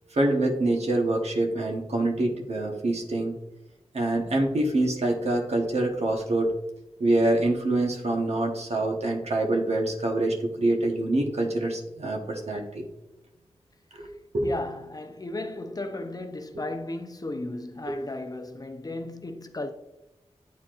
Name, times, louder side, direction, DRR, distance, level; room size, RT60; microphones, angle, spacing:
voice 1, 0.1-3.4 3.9-6.5 7.0-12.9 14.0-14.1 14.3-14.5 17.9-18.0, right 2 dB, 75° right, 1.1 m, -25 dB
voice 2, 14.4-19.7, left 2 dB, 35° left, 0.6 m, -35 dB
9.4 x 4.3 x 2.5 m
wide cardioid pair, 65°, 11 cm